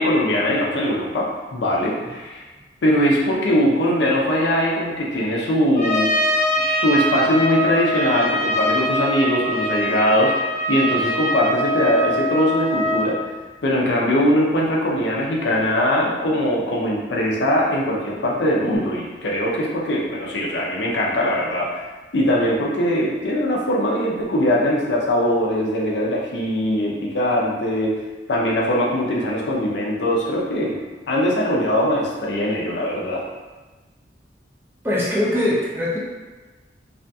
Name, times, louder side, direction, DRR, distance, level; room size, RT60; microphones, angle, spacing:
voice 1, 0.0-2.4 2.8-6.1 6.6-13.2 13.6-21.8 22.1-28.0 28.3-30.7 31.1-33.2, equal, 70° left, -3 dB, 0.5 m, -21 dB
Trumpet, 5.8-13.1, equal, 40° left, 0.8 m, -23 dB
voice 2, 34.8-36.0, left 1 dB, 15° right, -7 dB, 0.5 m, -21 dB
2.6 x 2.4 x 2.2 m, 1.2 s
head